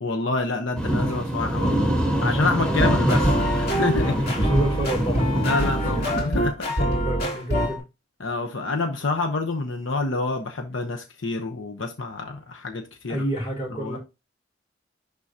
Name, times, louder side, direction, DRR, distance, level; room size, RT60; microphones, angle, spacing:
voice 1, 0.0-1.8 2.2-4.5 5.4-6.9 8.2-13.2 13.7-14.0, left 3 dB, 85° left, 1.0 m, -27 dB
sound 1, 0.8-6.2, right 1 dB, 5° left, 1.3 m, -25 dB
voice 2, 2.1-2.8 4.0-5.4 5.8-6.0 6.8-7.8 13.1-14.0, right 1 dB, 35° left, 4.9 m, -30 dB
sound 2, 2.6-7.8, equal, 55° left, 3.4 m, -25 dB
11.0 x 3.9 x 2.8 m
head